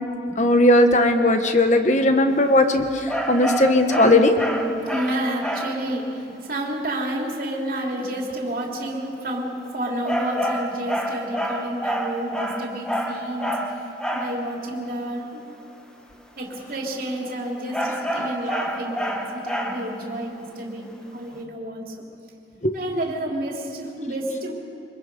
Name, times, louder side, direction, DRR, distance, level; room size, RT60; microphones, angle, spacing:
voice 1, 0.4-4.3 18.2-18.3 22.6-22.8, left 1 dB, 40° left, 6 dB, 1.3 m, -18 dB
sound 1, 3.1-5.8 10.1-14.4 17.7-20.0, equal, 5° left, 1.3 m, -28 dB
voice 2, 4.9-13.5 14.1-15.6 16.4-22.0 22.7-24.5, right 1 dB, 55° right, 0 dB, 3.0 m, -30 dB
24.5 x 22.0 x 5.4 m, 2.8 s
head